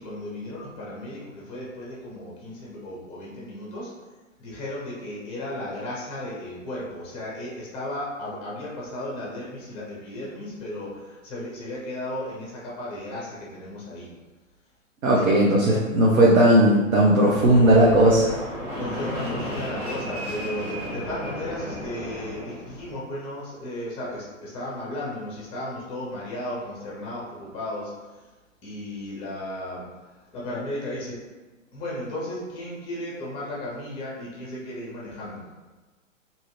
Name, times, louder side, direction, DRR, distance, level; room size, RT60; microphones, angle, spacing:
voice 1, 0.0-3.9 4.4-14.1 15.2-15.3 15.7-15.9 18.7-27.9 28.6-29.9 30.3-31.2 31.7-35.4, left 1 dB, 15° left, -5 dB, 0.6 m, -35 dB
voice 2, 15.0-18.4, right 1 dB, 85° right, -3 dB, 0.7 m, -17 dB
Fixed-wing aircraft airplane, 17.3-22.9, equal, 25° right, 1.0 m, -34 dB
2.7 x 2.4 x 3.0 m, 1.2 s
hypercardioid pair, 125°, 40 cm